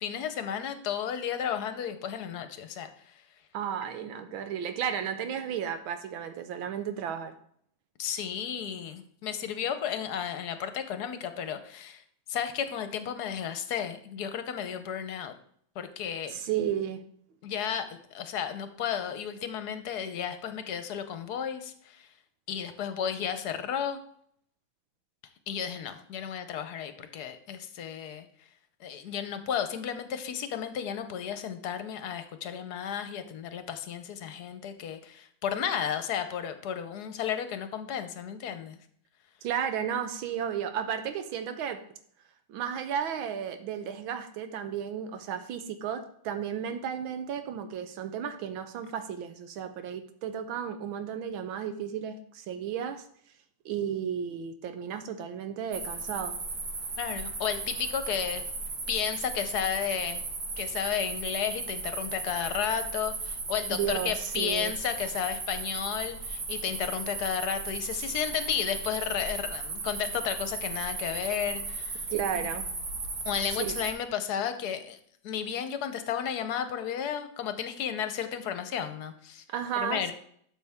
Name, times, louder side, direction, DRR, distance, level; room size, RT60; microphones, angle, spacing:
voice 1, 0.0-2.9 8.0-12.0 12.3-15.3 15.8-16.4 17.4-22.1 22.5-24.0 25.5-28.2 28.8-38.8 57.0-58.4 58.9-60.2 60.6-72.0 73.2-75.0 75.2-79.4 79.8-80.1, left 8 dB, 60° left, 10 dB, 1.2 m, -33 dB
voice 2, 3.5-7.3 16.3-17.0 39.4-41.8 42.5-53.0 53.6-56.4 63.7-64.7 72.1-72.7 73.6-73.7 79.5-80.1, right 8 dB, 80° right, 8 dB, 1.5 m, -33 dB
sound 1, 55.7-73.9, right 3 dB, 65° right, 2.4 m, -36 dB
12.0 x 6.8 x 3.5 m, 0.65 s
omnidirectional pair, 2.2 m